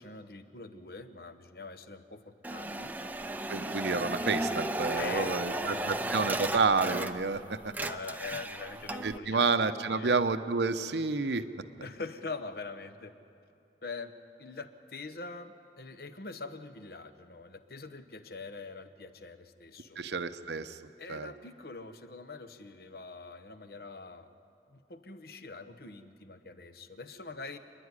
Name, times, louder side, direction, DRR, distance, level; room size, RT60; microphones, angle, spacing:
voice 1, 0.0-2.9 4.9-6.2 7.8-10.2 11.8-13.1 13.8-14.1 14.4-20.0 21.0-24.3 24.7-27.6, left 3 dB, 60° left, 10 dB, 1.0 m, -43 dB
sound 1, 2.4-7.4 7.6-9.2, right 1 dB, 10° right, 0.5 m, -35 dB
voice 2, 3.5-7.7 9.0-11.4 20.0-20.7 21.1-21.3, right 4 dB, 75° right, 10 dB, 0.8 m, -29 dB
28.0 x 11.0 x 9.8 m, 2.6 s
head